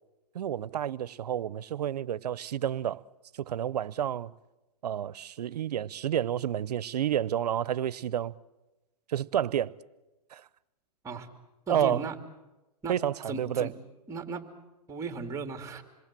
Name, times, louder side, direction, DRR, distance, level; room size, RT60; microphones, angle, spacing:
voice 1, 0.3-3.0 3.3-4.3 4.8-8.3 9.1-9.7 10.3-10.5 11.7-12.1 12.9-13.7, right 10 dB, 85° right, 0.8 m, -30 dB
voice 2, 11.7-12.1 12.8-12.9 13.3-13.7 14.1-14.4 14.9-15.8, right 4 dB, 15° right, 2.7 m, -36 dB
27.0 x 21.5 x 7.6 m
hypercardioid pair, 135°, 20 cm